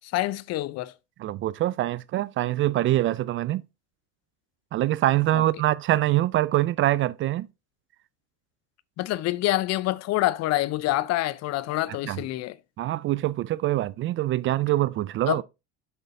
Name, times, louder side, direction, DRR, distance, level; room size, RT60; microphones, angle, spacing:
voice 1, 0.0-0.9 5.3-5.4 9.0-12.6 15.3-15.4, left 16 dB, 55° left, 0.6 m, -26 dB
voice 2, 1.2-3.6 4.7-7.5 12.1-12.2 12.8-15.4, right 15 dB, 40° right, 0.4 m, -24 dB
7.0 x 5.6 x 3.6 m
supercardioid pair, 100°, 32 cm